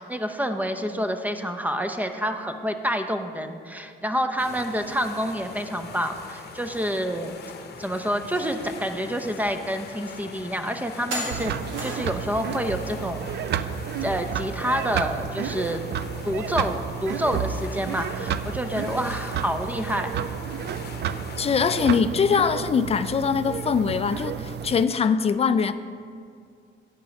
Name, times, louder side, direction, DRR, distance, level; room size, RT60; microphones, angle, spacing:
voice 1, 0.0-7.3 7.8-11.5 11.8-13.6 14.0-15.8 16.2-20.1, equal, 10° right, 7 dB, 0.6 m, -28 dB
sound 1, 4.4-22.0, left 5 dB, 55° left, 0.9 m, -42 dB
sound 2, 8.3-8.5 9.0-9.1 10.1-10.2 11.1-12.2, right 1 dB, 85° right, 2.0 m, -33 dB
sound 3, 11.3-24.8, right 8 dB, 60° right, 0.4 m, -31 dB
voice 2, 21.4-25.7, left 6 dB, 30° left, 11 dB, 0.4 m, -22 dB
9.0 x 5.4 x 6.3 m, 2.3 s
cardioid pair, 90°, 20 cm